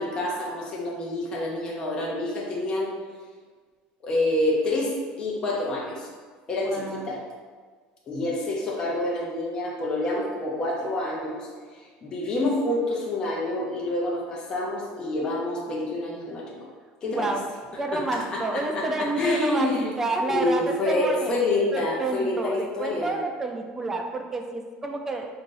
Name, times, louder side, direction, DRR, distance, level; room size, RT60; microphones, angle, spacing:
voice 1, 0.0-3.0 4.0-6.1 6.5-7.2 8.1-11.5 11.7-16.6 17.0-17.3 17.9-19.9 20.3-23.2, left 2 dB, 30° left, -3 dB, 0.7 m, -27 dB
voice 2, 6.6-7.1 17.1-17.4 17.8-21.3 21.7-25.3, right 2 dB, 15° right, 3 dB, 0.4 m, -29 dB
3.8 x 2.6 x 3.9 m, 1.5 s
cardioid pair, 155°, 3 cm